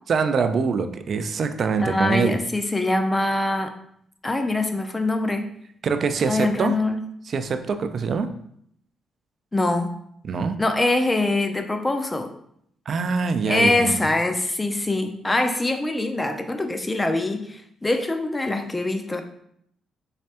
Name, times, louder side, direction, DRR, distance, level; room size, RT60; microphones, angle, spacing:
voice 1, 0.1-2.4 5.8-6.8 7.3-8.3 10.2-10.6 12.9-14.0, right 5 dB, 50° right, 9 dB, 0.3 m, -24 dB
voice 2, 1.8-3.7 4.2-5.5 6.3-7.0 9.5-9.9 10.6-12.3 13.5-19.2, left 2 dB, 15° left, 7 dB, 0.4 m, -23 dB
3.2 x 3.2 x 2.8 m, 0.70 s
cardioid pair, 90°, 0 cm